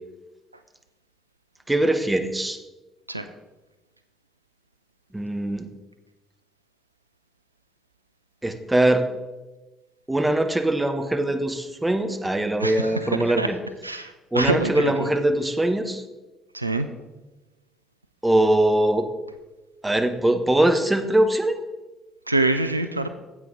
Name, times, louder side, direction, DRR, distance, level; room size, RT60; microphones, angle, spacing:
voice 1, 1.7-2.6 5.1-5.7 8.4-9.0 10.1-13.6 14.3-16.0 18.2-19.1 19.8-21.6, right 1 dB, 10° right, 7 dB, 1.0 m, -22 dB
voice 2, 12.6-13.5 13.8-15.1 16.5-16.9 22.3-23.1, right 2 dB, 85° right, 9 dB, 0.3 m, -25 dB
9.2 x 8.0 x 3.8 m, 1.1 s
figure-of-eight pair, 50°, 0 cm